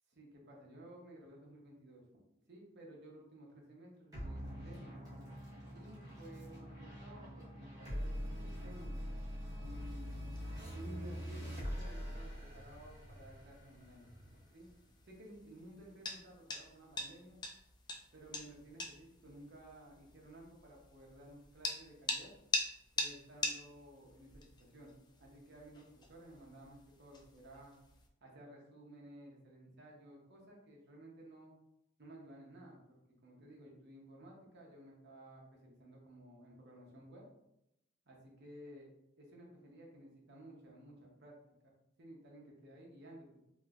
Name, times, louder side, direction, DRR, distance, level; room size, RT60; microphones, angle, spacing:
voice 1, 0.1-2.2 2.5-5.0 5.7-9.2 9.6-10.2 10.7-14.1 14.5-14.7 15.0-17.4 18.1-22.3 23.0-24.9 25.2-27.7 28.2-31.5 32.0-37.2 38.1-38.9 39.2-41.4 41.6-43.3, right 1 dB, 60° right, -1 dB, 0.8 m, -55 dB
sound 1, 4.1-14.9, equal, 20° right, 1.1 m, -44 dB
sound 2, 9.8-28.1, left 2 dB, 20° left, 0.3 m, -45 dB
3.0 x 3.0 x 2.4 m, 0.84 s
head